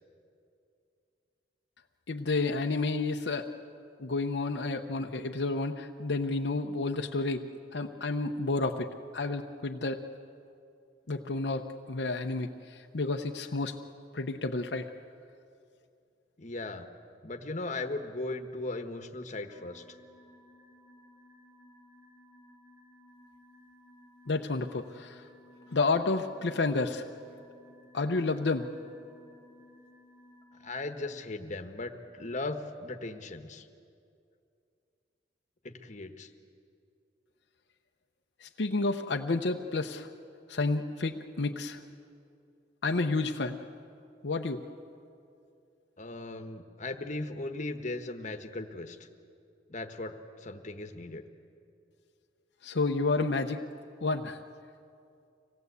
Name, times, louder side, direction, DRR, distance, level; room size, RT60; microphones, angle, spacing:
voice 1, 2.1-3.5 4.0-7.5 7.7-10.0 11.1-13.8 14.1-14.9 24.3-25.2 25.7-27.1 27.9-28.7 38.4-40.1 40.5-41.8 42.8-43.6 44.2-44.6 52.6-53.6 54.0-54.4, left 3 dB, 70° left, 3 dB, 0.8 m, -30 dB
voice 2, 16.4-16.9 17.2-19.8 30.6-33.6 35.6-36.3 46.0-49.0 49.7-51.3, left 2 dB, 40° left, 5 dB, 1.3 m, -38 dB
sound 1, 19.5-31.1, left 1 dB, 25° right, 5.8 m, -58 dB
25.5 x 18.0 x 8.2 m, 2.5 s
head